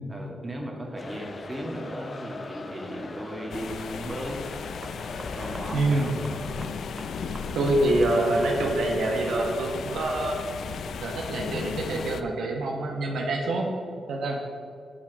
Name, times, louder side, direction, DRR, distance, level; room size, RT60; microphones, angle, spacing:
voice 1, 0.1-4.4 5.3-6.1, equal, 20° right, -1 dB, 1.7 m, -36 dB
sound 1, 1.0-7.8, left 3 dB, 45° left, 0.7 m, -41 dB
sound 2, 2.4-2.8 4.8-7.5 7.7-7.8 8.4-8.6, right 2 dB, 40° right, 1.0 m, -45 dB
sound 3, 3.5-12.2, left 6 dB, 80° left, 0.4 m, -35 dB
voice 2, 5.7-6.1 7.5-10.4 11.0-13.7 14.1-14.4, right 2 dB, 85° right, 0 dB, 1.1 m, -26 dB
7.1 x 5.0 x 6.1 m, 2.3 s
cardioid pair, 75°, 0 cm